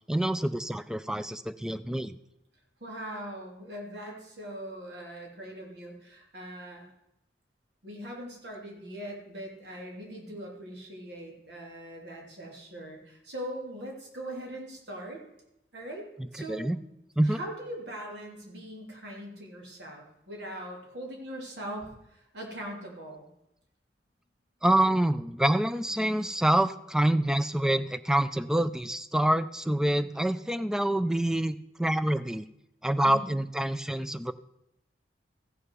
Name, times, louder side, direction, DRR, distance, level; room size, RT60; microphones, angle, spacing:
voice 1, 0.1-2.2 16.5-16.8 17.2-17.4 24.6-32.5 32.8-34.3, right 1 dB, 5° right, 13 dB, 0.4 m, -26 dB
voice 2, 2.8-6.9 7.8-15.2 15.7-16.7 17.2-23.3 33.0-33.3, right 1 dB, 75° right, 0 dB, 3.1 m, -41 dB
15.0 x 6.6 x 6.1 m, 0.85 s
head